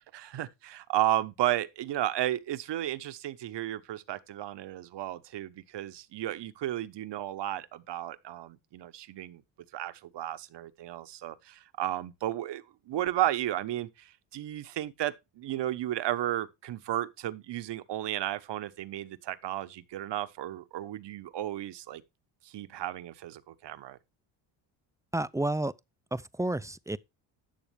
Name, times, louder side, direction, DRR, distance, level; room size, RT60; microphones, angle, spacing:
voice 1, 0.1-9.4 9.7-22.0 22.4-24.0, right 13 dB, 60° right, 1.1 m, -33 dB
voice 2, 25.1-25.7 26.1-27.0, right 2 dB, 5° right, 0.5 m, -30 dB
11.5 x 7.0 x 3.3 m
supercardioid pair, 75°, 47 cm